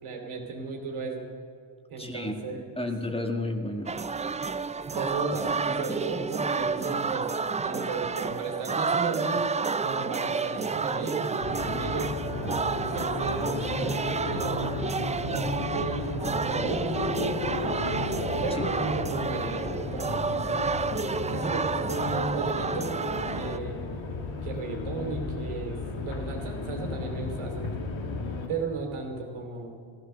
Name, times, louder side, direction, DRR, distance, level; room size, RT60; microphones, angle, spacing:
voice 1, 0.0-1.3 1.9-2.9 4.9-7.3 7.6-9.5 9.8-12.1 12.8-14.7 15.3-17.5 18.0-20.7 21.0-23.0 23.3-23.9 24.4-27.7 28.5-29.8, right 4 dB, 85° right, 1 dB, 3.0 m, -35 dB
voice 2, 2.0-3.9 18.5-18.6, left 2 dB, 10° left, 4 dB, 1.6 m, -32 dB
sound 1, 3.9-23.6, right 4 dB, 15° right, 0.3 m, -30 dB
sound 2, 11.4-28.5, left 3 dB, 65° left, 2.0 m, -33 dB
15.0 x 14.5 x 6.8 m, 2.4 s
cardioid pair, 90°, 49 cm